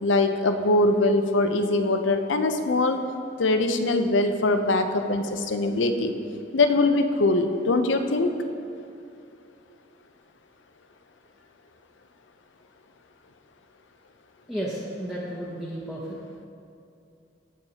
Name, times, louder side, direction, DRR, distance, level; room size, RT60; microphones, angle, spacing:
voice 1, 0.0-3.0 3.4-6.1 6.5-8.3, left 2 dB, 90° left, 7 dB, 0.6 m, -22 dB
voice 2, 14.5-16.2, right 1 dB, ahead, -6 dB, 0.8 m, -33 dB
16.0 x 5.5 x 2.9 m, 2.5 s
head